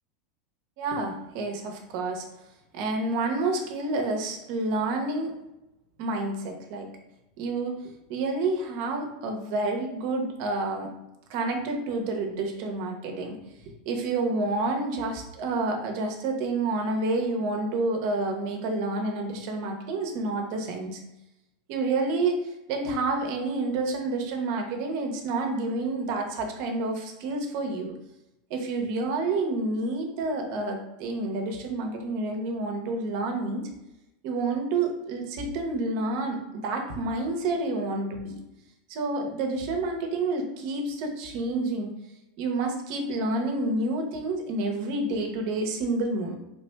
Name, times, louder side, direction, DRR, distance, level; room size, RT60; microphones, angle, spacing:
voice 1, 0.8-2.2 2.7-5.3 6.0-6.9 7.4-10.9 11.3-13.4 13.6-21.0 21.7-27.9 28.5-33.7 34.2-38.4 38.9-41.9 42.4-46.3, right 2 dB, 55° right, 3 dB, 0.8 m, -29 dB
4.2 x 3.3 x 2.2 m, 0.92 s
supercardioid pair, 140°, 0 cm